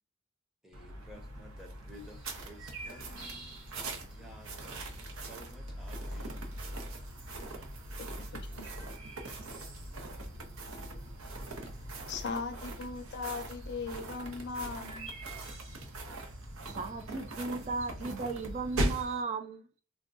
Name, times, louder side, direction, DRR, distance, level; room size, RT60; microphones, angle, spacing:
voice 1, 0.6-6.9 7.5-7.6 7.9-8.0, left 1 dB, ahead, 0.6 m, -54 dB
sound 1, 0.7-19.1, right 1 dB, 85° right, 0.7 m, -41 dB
sound 2, 1.9-19.2, right 3 dB, 65° right, 1.0 m, -54 dB
voice 2, 8.3-8.6 12.1-15.1, left 4 dB, 55° left, 0.5 m, -38 dB
voice 3, 16.7-19.8, right 4 dB, 35° right, 0.3 m, -36 dB
3.5 x 2.2 x 2.5 m
head